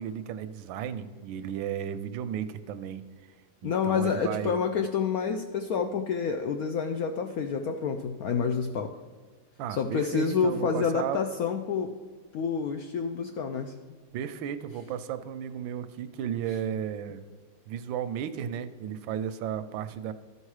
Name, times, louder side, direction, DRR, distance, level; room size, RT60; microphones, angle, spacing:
voice 1, 0.0-3.0 3.6-4.6 9.6-11.2 14.1-17.2 17.7-20.1, right 9 dB, 85° right, 12 dB, 1.3 m, -34 dB
voice 2, 3.6-9.0 9.7-11.9 12.3-13.7, left 6 dB, 75° left, 5 dB, 0.8 m, -28 dB
13.0 x 5.4 x 4.8 m, 1.5 s
omnidirectional pair, 2.1 m